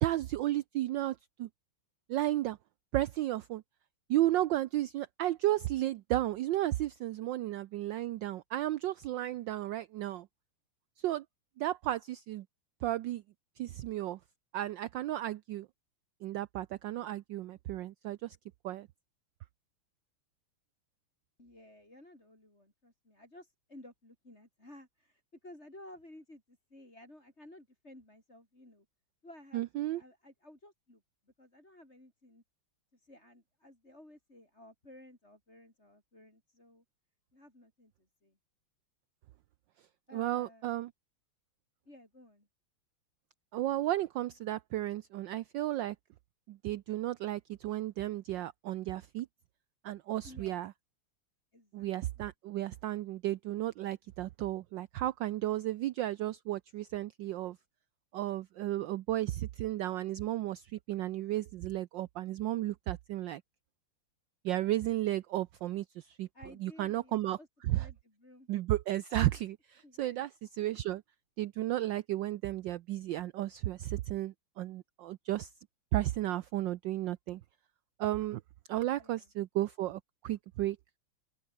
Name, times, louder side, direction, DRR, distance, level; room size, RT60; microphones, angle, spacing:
voice 1, 0.0-1.5 2.1-2.6 2.9-3.6 4.1-10.3 11.0-11.2 11.6-12.4 12.8-13.2 13.6-14.2 14.5-15.7 16.2-18.4 18.6-18.9 29.5-30.0 40.1-40.9 43.5-46.0 46.5-49.3 49.8-50.7 51.7-57.6 58.1-63.4 64.4-66.3 66.6-67.4 67.6-67.9 68.5-71.0 71.4-75.5 75.9-77.4 78.0-78.4 78.7-80.8, right 14 dB, 70° right, 1.2 m, -33 dB
voice 2, 21.4-28.9 29.2-31.0 31.4-32.4 32.9-36.8 37.3-37.9 38.2-38.4 40.1-40.7 41.9-42.5 50.2-50.6 51.5-51.9 52.2-52.3 55.6-55.7 66.3-67.5 67.7-68.5 69.8-70.2 79.0-79.3, left 1 dB, 30° left, 7.2 m, -55 dB
open air
omnidirectional pair, 2.4 m